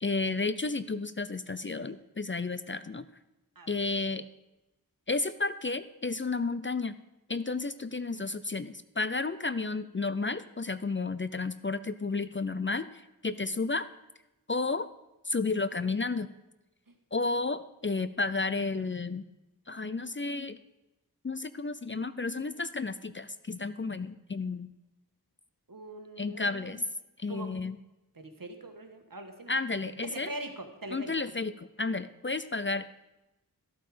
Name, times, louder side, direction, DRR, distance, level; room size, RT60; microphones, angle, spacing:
voice 1, 0.0-3.1 3.7-4.2 5.1-7.0 7.3-13.9 14.5-14.9 15.3-16.3 17.1-19.2 19.7-20.6 21.2-24.7 26.2-26.8 27.2-27.8 29.5-30.3 30.9-32.9, left 3 dB, 35° left, 13 dB, 0.5 m, -32 dB
voice 2, 25.7-26.8 27.3-27.5 28.1-29.5 30.0-31.1, right 2 dB, 65° right, 5 dB, 1.5 m, -42 dB
13.5 x 8.5 x 5.1 m, 0.97 s
wide cardioid pair, 45°, 37 cm